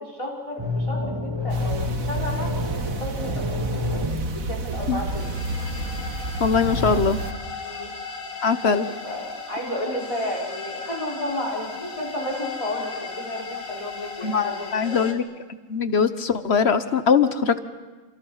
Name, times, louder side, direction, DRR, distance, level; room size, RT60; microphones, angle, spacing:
voice 1, 0.0-2.5 3.0-3.8 4.5-5.4 7.6-7.9 8.6-8.8 9.0-15.1, left 1 dB, 25° left, -3 dB, 5.1 m, -32 dB
sound 1, 0.6-4.8 6.5-7.0, left 2 dB, 20° right, 1.9 m, -29 dB
sound 2, 1.5-7.3, right 2 dB, 85° right, 1.8 m, -30 dB
sound 3, 5.1-15.1, left 4 dB, 75° left, 2.6 m, -36 dB
voice 2, 6.4-7.2 8.4-8.9 14.2-15.2 15.7-17.6, left 6 dB, 50° left, 11 dB, 1.3 m, -21 dB
29.5 x 27.0 x 5.7 m, 1.3 s
omnidirectional pair, 1.4 m